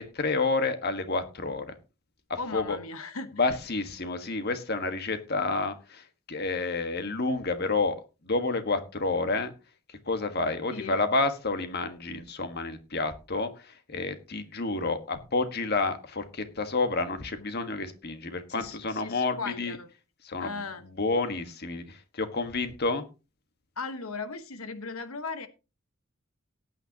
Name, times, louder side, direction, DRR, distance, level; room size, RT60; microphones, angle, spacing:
voice 1, 0.0-1.7 2.3-2.8 3.4-8.0 8.2-9.5 10.1-19.8 20.2-20.6 21.0-23.0, left 3 dB, 50° left, 8 dB, 1.5 m, -29 dB
voice 2, 2.4-3.6 10.7-11.0 18.5-19.9 20.4-20.8 23.8-25.5, left 4 dB, 85° left, 10 dB, 1.2 m, -37 dB
18.0 x 9.1 x 2.9 m, 0.30 s
head